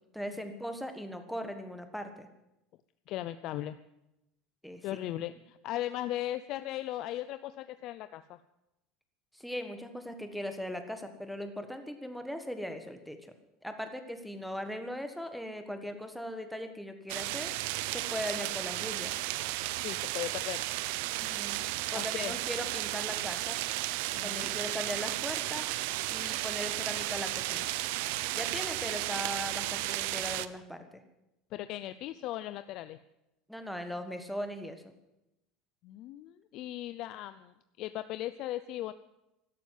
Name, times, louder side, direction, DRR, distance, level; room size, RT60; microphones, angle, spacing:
voice 1, 0.1-2.3 4.6-4.9 9.3-13.3 13.6-17.5 17.9-19.2 21.2-23.6 24.2-25.7 26.1-27.7 28.3-31.0 33.5-34.9, equal, ahead, 7 dB, 1.5 m, -39 dB
voice 2, 3.1-3.8 4.8-8.4 19.8-20.6 21.9-22.3 24.1-24.5 31.5-33.0 35.8-38.9, left 14 dB, 50° left, 12 dB, 0.5 m, -38 dB
sound 1, 17.1-30.5, right 17 dB, 75° right, 0.7 m, -34 dB
13.0 x 12.0 x 9.3 m, 0.91 s
cardioid pair, 155°, 0 cm